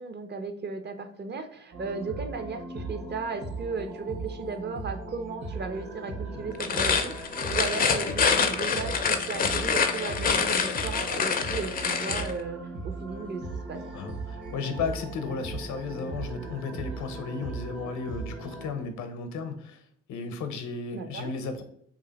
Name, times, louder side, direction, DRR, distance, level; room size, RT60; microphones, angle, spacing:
voice 1, 0.0-13.4 13.7-13.8 20.9-21.3, right 4 dB, 35° right, 7 dB, 0.5 m, -35 dB
sound 1, 1.7-18.7, right 3 dB, 60° right, 1.2 m, -38 dB
sound 2, 6.5-12.3, left 5 dB, 30° left, 0.4 m, -26 dB
voice 2, 13.9-19.8 20.1-21.6, left 4 dB, 70° left, 8 dB, 0.7 m, -34 dB
2.9 x 2.4 x 3.9 m, 0.66 s
cardioid pair, 90°, 30 cm